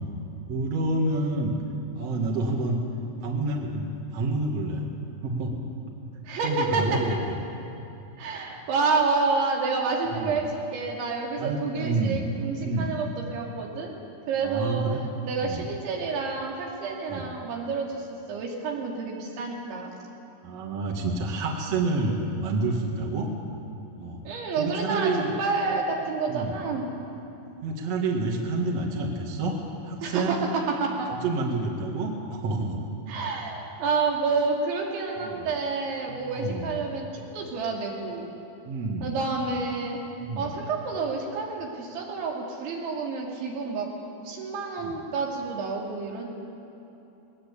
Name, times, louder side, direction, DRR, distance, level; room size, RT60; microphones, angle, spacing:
voice 1, 0.5-1.5 1.9-2.8 3.2-4.9 5.2-5.6 6.4-7.2 10.1-10.3 11.4-12.2 12.6-12.9 14.4-15.0 15.4-15.7 17.1-17.2 20.4-23.3 24.0-24.2 24.6-25.3 26.3-26.6 27.6-29.6 29.8-30.4 31.2-32.8 35.2-35.5 36.1-36.8 38.6-39.2 40.2-40.5 44.8-45.0, right 2 dB, 50° right, -1 dB, 2.1 m, -28 dB
voice 2, 6.2-7.0 8.2-13.9 14.3-14.8 15.2-19.9 24.2-25.1 25.4-26.9 30.0-30.4 30.7-31.1 33.1-37.1 37.3-38.3 39.0-40.0 40.4-43.9 44.2-46.3, right 4 dB, 85° right, -1 dB, 5.1 m, -29 dB
20.5 x 19.0 x 8.5 m, 3.0 s
omnidirectional pair, 5.2 m